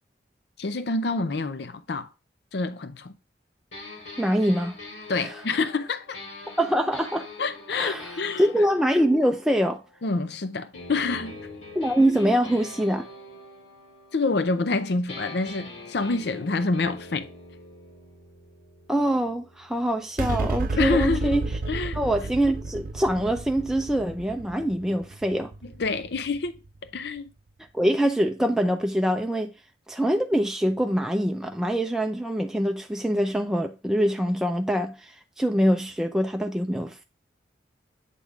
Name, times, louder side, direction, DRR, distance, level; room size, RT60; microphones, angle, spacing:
voice 1, 0.6-2.1 2.5-3.1 5.1-6.2 7.4-8.5 10.0-11.5 14.1-17.3 20.8-21.3 21.7-22.0 25.6-27.3, left 3 dB, 60° left, 0.6 m, -27 dB
sound 1, 3.7-10.3 10.7-14.8 15.1-20.8, left 2 dB, 80° left, 2.7 m, -44 dB
voice 2, 4.2-4.8 5.2-5.3 6.6-7.3 7.7-8.1 8.4-9.8 11.7-13.1 18.9-21.5 21.9-25.5 27.7-29.5 29.9-37.0, equal, 5° right, 0.4 m, -24 dB
sound 2, 20.2-26.9, right 2 dB, 50° right, 0.6 m, -31 dB
8.3 x 3.6 x 3.5 m
head